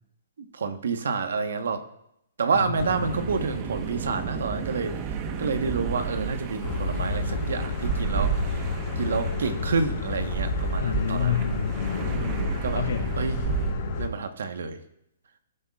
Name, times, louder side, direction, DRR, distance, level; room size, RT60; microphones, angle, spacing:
voice 1, 0.4-1.8 2.4-5.0 5.4-8.3 9.0-11.4 12.6-12.8 13.2-13.4 14.0-14.8, right 5 dB, 75° right, 8 dB, 1.3 m, -28 dB
voice 2, 2.7-3.2 10.8-13.1, left 8 dB, 70° left, 8 dB, 1.2 m, -30 dB
sound 1, 2.7-13.7, right 6 dB, 35° right, 1.2 m, -32 dB
sound 2, 6.6-14.1, left 4 dB, 45° left, 3.6 m, -31 dB
20.0 x 9.9 x 2.5 m, 0.80 s
hypercardioid pair, 135°, 0 cm